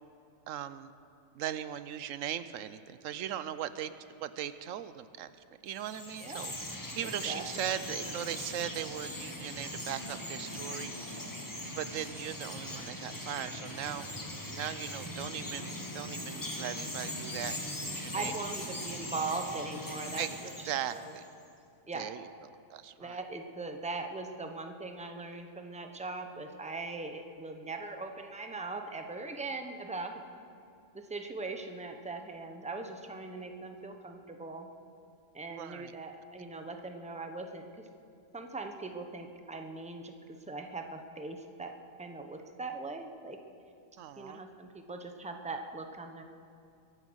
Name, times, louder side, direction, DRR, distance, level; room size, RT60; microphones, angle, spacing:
voice 1, 0.5-0.9 1.3-3.9 4.2-5.4 5.6-11.3 11.6-14.1 14.4-17.6 17.8-18.4 18.7-19.0 20.2-20.4 20.6-21.2 21.9-22.3 22.7-23.2 35.5-35.9 44.0-44.4, right 10 dB, 90° right, 13 dB, 1.0 m, -39 dB
Chirp tweet, 5.7-21.3, left 1 dB, 15° left, 1.4 m, -40 dB
voice 2, 7.0-7.4 18.1-20.5 20.9-21.1 21.9-22.1 23.0-30.2 30.9-34.7 35.3-37.9 38.3-41.7 42.0-43.4 44.2-46.2, right 3 dB, 5° right, 5 dB, 0.8 m, -40 dB
23.0 x 9.1 x 6.3 m, 2.6 s
omnidirectional pair, 1.3 m